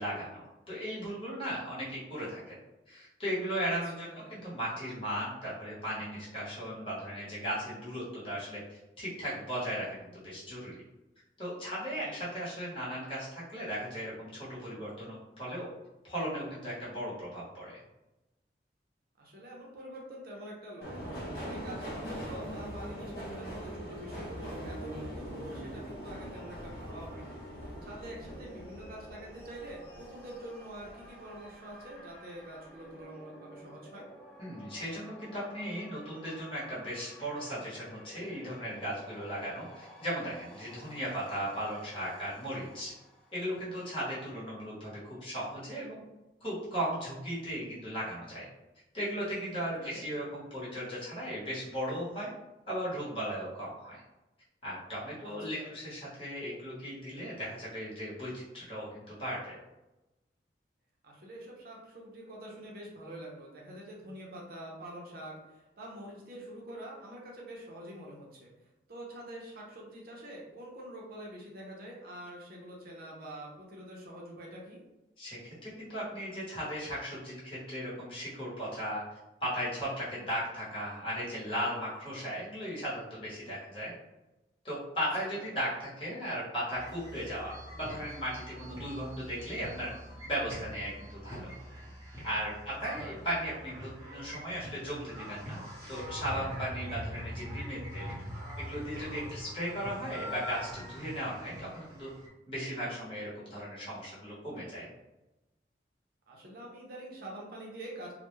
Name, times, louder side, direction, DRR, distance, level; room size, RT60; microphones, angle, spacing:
voice 1, 0.0-2.5 2.9-10.7 11.4-15.7 16.0-17.8 34.4-42.9 43.3-46.0 46.4-48.5 48.9-52.3 52.7-54.0 54.6-59.6 75.2-79.0 79.4-83.9 84.6-89.9 90.2-91.5 92.2-95.6 95.9-98.1 98.6-102.1 102.5-104.9, equal, 30° left, -8 dB, 1.0 m, -37 dB
voice 2, 4.0-4.3 12.0-12.2 19.2-34.1 49.8-50.1 55.2-55.7 61.0-68.5 68.9-74.8 85.4-85.6 92.7-93.2 106.3-108.1, right 1 dB, 50° right, -3 dB, 0.5 m, -46 dB
Subway metro underground, 20.8-31.5 31.9-32.6 32.9-33.0, equal, 55° left, 0.6 m, -42 dB
sound 1, 24.0-43.9, equal, 5° left, 0.3 m, -54 dB
sound 2, 86.7-102.3, equal, 15° right, 0.8 m, -44 dB
2.2 x 2.1 x 3.0 m, 1.0 s
head